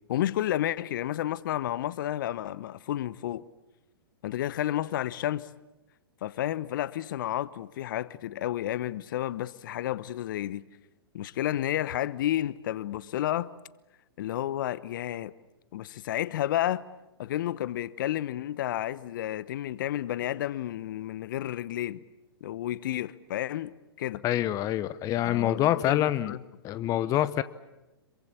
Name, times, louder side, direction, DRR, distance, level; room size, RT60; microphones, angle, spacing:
voice 1, 0.1-3.4 4.2-5.5 6.2-10.6 11.1-13.5 14.2-15.3 15.7-16.8 17.2-22.0 22.4-23.7 24.0-24.2 25.2-26.4, left 12 dB, 55° left, 1.0 m, -31 dB
voice 2, 24.2-26.3 26.6-27.4, left 12 dB, 25° left, 0.9 m, -26 dB
27.0 x 23.5 x 8.5 m
hypercardioid pair, 115°, 13 cm